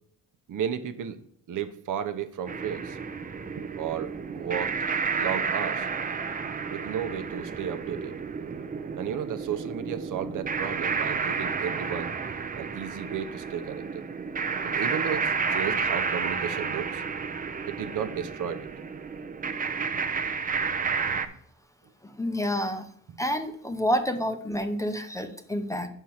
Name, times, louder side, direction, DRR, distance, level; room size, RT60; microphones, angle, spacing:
voice 1, 0.5-1.2 1.5-3.0 3.8-4.8 5.2-5.9 6.7-8.1 9.0-12.2 12.6-14.0 14.6-17.0 17.7-18.7, right 8 dB, 60° right, 8 dB, 0.8 m, -33 dB
sound 1, 2.5-21.3, right 5 dB, 25° right, 0.6 m, -31 dB
voice 2, 22.0-22.8 23.2-25.9, equal, 10° left, 7 dB, 0.7 m, -29 dB
5.7 x 4.5 x 6.3 m, 0.65 s
cardioid pair, 100°, 35 cm